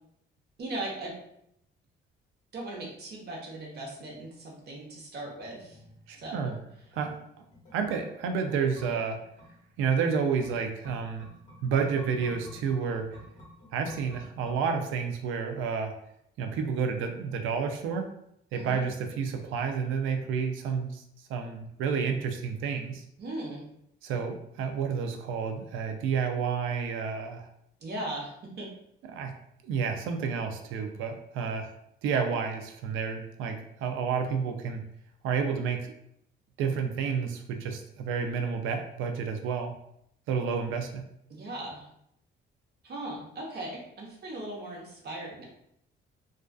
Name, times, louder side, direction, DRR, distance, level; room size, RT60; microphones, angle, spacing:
voice 1, 0.6-1.1 2.5-5.8 6.2-6.5 18.5-18.9 23.2-23.6 27.8-28.7 41.3-41.8 42.8-45.4, right 1 dB, 55° right, -2 dB, 0.9 m, -38 dB
sound 1, 5.6-15.1 15.4-15.5, left 1 dB, 35° left, 0.9 m, -51 dB
voice 2, 6.1-6.6 7.0-7.2 7.7-9.2 9.8-11.3 11.6-13.1 13.7-15.9 16.4-18.1 18.5-21.0 21.3-23.0 24.0-27.5 29.1-29.3 29.6-31.7 32.0-34.8 35.2-35.9 36.6-39.7 40.3-41.1, right 6 dB, 90° right, 4 dB, 0.4 m, -30 dB
2.4 x 2.3 x 2.3 m, 0.75 s
cardioid pair, 90°, 20 cm